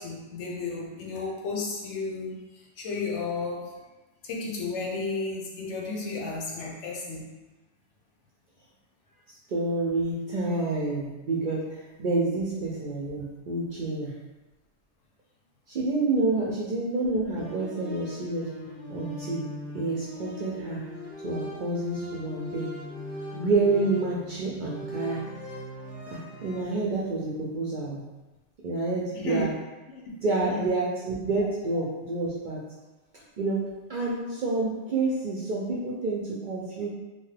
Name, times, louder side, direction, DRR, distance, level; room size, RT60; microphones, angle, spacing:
voice 1, 0.0-3.7 4.2-7.3 29.1-29.5 29.9-30.0 30.5-30.7, left 3 dB, 75° left, -2 dB, 0.9 m, -33 dB
voice 2, 9.5-14.1 15.7-18.5 18.9-19.4 19.7-20.8 21.2-22.7 23.3-25.2 26.1-28.0 28.6-29.5 30.2-32.6 33.4-33.6 33.9-36.9, right 3 dB, 60° right, -5 dB, 0.5 m, -28 dB
sound 1, 17.4-26.6, left 1 dB, 15° left, 0.7 m, -40 dB
2.7 x 2.2 x 3.2 m, 1.1 s
omnidirectional pair, 1.2 m